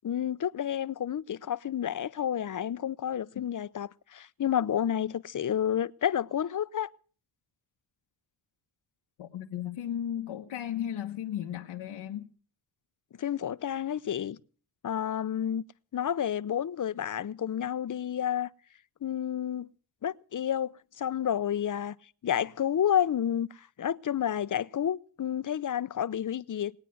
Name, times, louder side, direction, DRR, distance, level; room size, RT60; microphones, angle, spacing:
voice 1, 0.0-6.9 13.2-14.4 14.8-15.6 15.9-18.5 19.0-19.7 20.0-21.9 22.2-26.7, left 9 dB, 40° left, 0.7 m, -30 dB
voice 2, 9.2-12.3, left 10 dB, 85° left, 1.3 m, -35 dB
19.5 x 9.1 x 7.8 m
cardioid pair, 70°, 47 cm